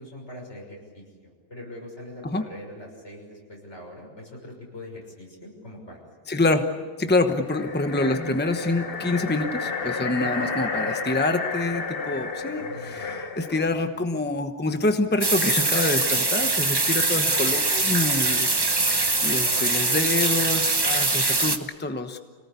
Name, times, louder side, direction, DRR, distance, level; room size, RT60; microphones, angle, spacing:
voice 1, 0.0-6.0 10.2-10.5 12.6-13.2 13.9-14.0 19.4-19.7, left 1 dB, 80° left, -1 dB, 6.7 m, -42 dB
voice 2, 6.3-19.0 19.2-22.2, left 2 dB, 10° left, 7 dB, 1.1 m, -26 dB
sound 1, 7.4-13.8, left 4 dB, 55° left, 1.4 m, -31 dB
sound 2, 15.2-21.6, right 3 dB, 20° right, 1.0 m, -23 dB
26.5 x 18.5 x 8.4 m, 1.5 s
omnidirectional pair, 1.2 m